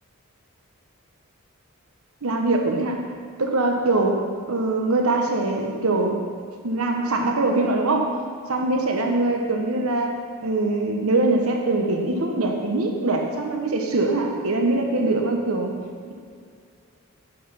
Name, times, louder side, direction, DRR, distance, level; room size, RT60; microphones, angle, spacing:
voice 1, 2.2-3.0 3.4-4.2 4.5-6.2 6.6-8.1 8.5-10.1 10.4-15.7, right 2 dB, 80° right, 2 dB, 1.1 m, -22 dB
10.0 x 5.5 x 5.5 m, 2.2 s
head